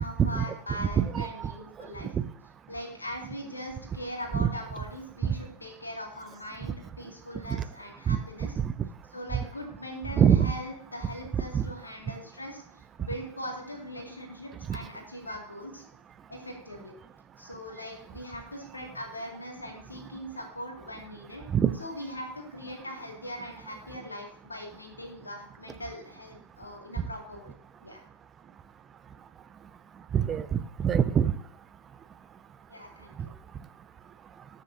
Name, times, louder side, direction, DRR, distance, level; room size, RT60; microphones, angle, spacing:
voice 1, 0.0-2.1 2.7-8.5 9.1-15.8 16.3-16.9 17.4-21.4 21.8-27.5 27.8-28.0 32.7-33.3, equal, 80° left, 2 dB, 2.3 m, -40 dB
voice 2, 0.8-1.5 4.4-4.5 5.2-5.3 8.1-8.2 8.6-8.7 10.2-10.5 11.5-11.6 14.7-14.8 21.5-21.7 30.1-31.3, right 8 dB, 25° right, 14 dB, 0.5 m, -24 dB
19.5 x 6.7 x 2.8 m, 0.65 s
figure-of-eight pair, 90°, 0 cm